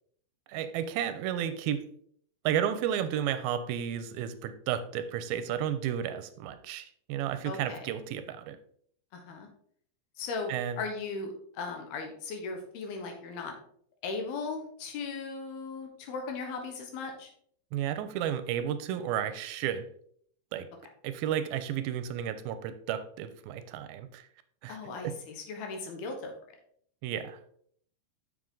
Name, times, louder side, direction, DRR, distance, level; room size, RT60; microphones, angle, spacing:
voice 1, 0.5-1.9 2.4-8.6 10.5-10.8 17.7-19.9 20.5-20.7 21.0-24.2 24.6-24.8 25.0-25.2 27.0-27.4, right 10 dB, 80° right, 11 dB, 2.4 m, -32 dB
voice 2, 7.4-7.9 9.1-9.5 10.2-13.5 14.0-17.3 24.7-26.3, left 4 dB, 80° left, 4 dB, 3.2 m, -37 dB
7.4 x 6.3 x 3.8 m, 0.62 s
omnidirectional pair, 4.4 m